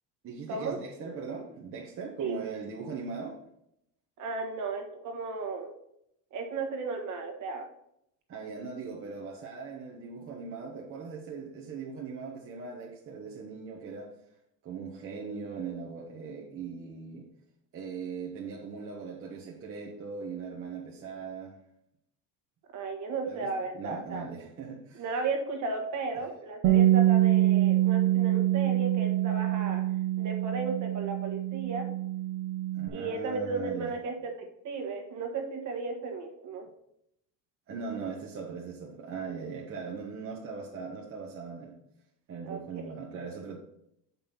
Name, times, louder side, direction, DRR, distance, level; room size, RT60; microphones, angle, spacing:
voice 1, 0.2-3.4 8.3-14.1 14.6-17.3 17.7-21.5 23.3-23.5 23.7-25.0 32.7-33.9 37.7-41.8 42.3-43.6, right 5 dB, 35° right, 0.9 m, -39 dB
voice 2, 4.2-5.7 6.3-7.6 22.7-24.3 25.0-29.8 30.2-31.9 32.9-36.7 42.4-42.8, right 4 dB, 50° right, 1.4 m, -35 dB
Bass guitar, 26.6-32.9, right 14 dB, 75° right, 0.9 m, -25 dB
7.5 x 5.3 x 4.3 m
cardioid pair, 175°, 38 cm